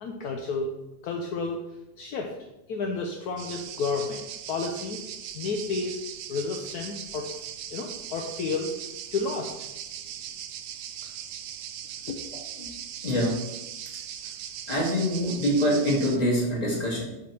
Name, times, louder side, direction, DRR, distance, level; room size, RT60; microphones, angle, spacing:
voice 1, 0.0-0.7 1.0-1.6 2.0-2.3 2.7-4.2 4.5-5.1 5.3-6.0 6.3-7.3 7.7-8.7 9.1-9.7 11.0-11.1 12.1-12.2, left 4 dB, 65° left, 2 dB, 1.0 m, -31 dB
sound 1, 3.4-16.2, right 10 dB, 75° right, 1.3 m, -39 dB
voice 2, 13.0-13.4 14.7-17.0, equal, 20° left, -3 dB, 2.1 m, -25 dB
7.5 x 3.7 x 5.8 m, 0.97 s
omnidirectional pair, 2.3 m